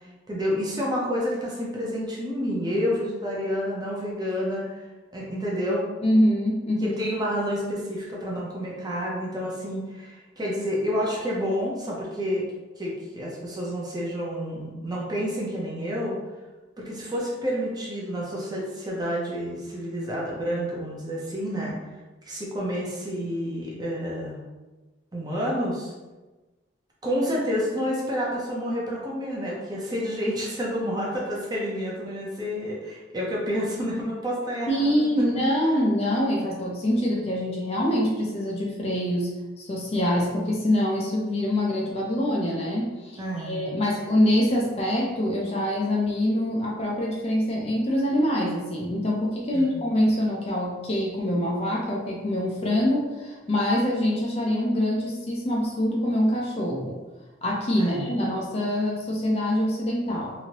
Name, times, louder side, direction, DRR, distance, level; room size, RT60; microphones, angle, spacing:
voice 1, 0.3-4.8 5.1-5.8 6.8-12.4 12.8-16.2 16.8-21.7 22.2-24.4 25.1-25.9 27.0-34.9 35.2-35.4 43.2-43.7 49.5-49.7 57.8-58.0, equal, 20° right, -4 dB, 0.6 m, -29 dB
voice 2, 6.0-7.0 34.7-39.3 39.6-57.0 57.4-60.3, left 1 dB, 30° left, -2 dB, 0.4 m, -25 dB
3.0 x 2.7 x 2.8 m, 1.2 s
head